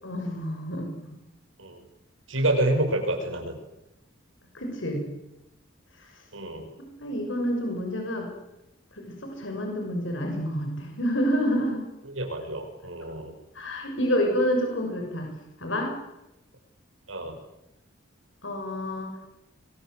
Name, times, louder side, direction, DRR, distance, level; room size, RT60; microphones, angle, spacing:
voice 1, 0.0-0.9 2.4-2.5 4.5-5.1 6.8-8.3 9.2-11.8 13.5-15.3 15.6-15.9 18.4-19.1, equal, 75° left, 2 dB, 6.6 m, -28 dB
voice 2, 2.3-3.5 6.3-6.7 12.1-13.3 17.1-17.3, right 1 dB, 90° right, 4 dB, 6.7 m, -27 dB
27.5 x 23.0 x 8.0 m, 0.92 s
head